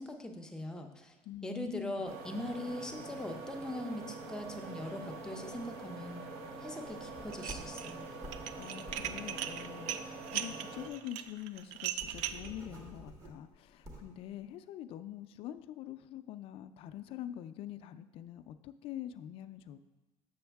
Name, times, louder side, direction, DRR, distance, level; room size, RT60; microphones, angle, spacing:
voice 1, 0.0-1.2 1.4-6.2 6.6-8.1, left 1 dB, 5° left, 4 dB, 0.6 m, -41 dB
voice 2, 1.2-2.0 8.5-19.8, left 11 dB, 50° left, 11 dB, 0.4 m, -45 dB
sound 1, 2.1-10.9, right 3 dB, 60° right, 1.1 m, -45 dB
sound 2, 7.0-10.5 10.9-11.0 11.3-11.4 11.7-14.2, right 1 dB, 30° right, 1.3 m, -50 dB
Dishes pots and pans, 7.3-7.9 8.2-12.5, right 11 dB, 85° right, 0.4 m, -38 dB
7.0 x 6.4 x 3.4 m, 1.1 s
cardioid pair, 140°, 12 cm